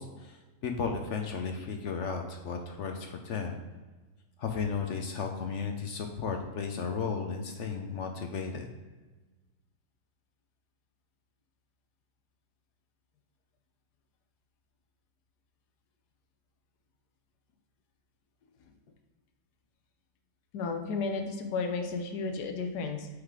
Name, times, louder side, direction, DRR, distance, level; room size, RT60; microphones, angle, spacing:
voice 1, 0.0-3.6 4.4-8.7, left 5 dB, 65° left, 4 dB, 0.8 m, -34 dB
voice 2, 20.5-23.1, left 4 dB, 80° left, 5 dB, 1.3 m, -33 dB
6.4 x 3.8 x 4.7 m, 1.2 s
omnidirectional pair, 1.7 m